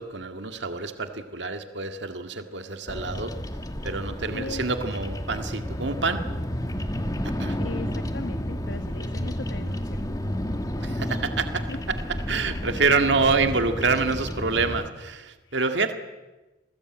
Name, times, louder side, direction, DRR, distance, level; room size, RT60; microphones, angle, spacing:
voice 1, 0.0-3.3 3.8-6.2 7.4-7.6 10.8-11.6 11.9-12.0 12.3-15.9, right 4 dB, 70° right, 7 dB, 2.0 m, -26 dB
Bird vocalization bird call bird song, 2.9-14.9, equal, 20° left, 1.9 m, -31 dB
voice 2, 4.3-4.6 7.6-10.1 11.7-11.8 15.4-15.7, left 3 dB, 75° left, 8 dB, 1.5 m, -38 dB
28.5 x 21.0 x 8.9 m, 1.1 s
head